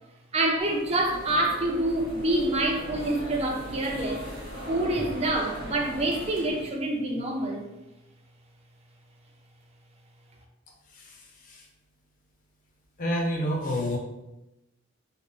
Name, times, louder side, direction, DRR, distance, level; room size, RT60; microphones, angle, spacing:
voice 1, 0.3-4.2 4.7-7.6, right 1 dB, 30° right, 1 dB, 0.4 m, -27 dB
sound 1, 0.6-6.6, right 1 dB, 50° right, 0.9 m, -38 dB
voice 2, 10.9-11.7 13.0-14.0, equal, 40° left, 0 dB, 0.5 m, -29 dB
2.0 x 2.0 x 3.7 m, 0.95 s
head